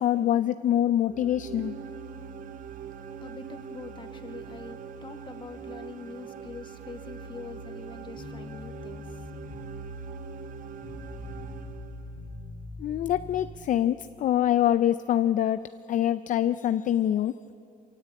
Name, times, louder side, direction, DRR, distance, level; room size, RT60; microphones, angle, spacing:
voice 1, 0.0-1.8 12.8-15.6 15.9-17.3, left 11 dB, 50° left, 0.5 m, -25 dB
sound 1, 1.0-12.4, right 7 dB, 55° right, 0.9 m, -42 dB
voice 2, 2.6-9.4, left 5 dB, 30° left, 1.7 m, -44 dB
sound 2, 8.2-13.5, left 2 dB, 80° left, 3.0 m, -42 dB
23.5 x 17.5 x 8.3 m
cardioid pair, 110°, 17 cm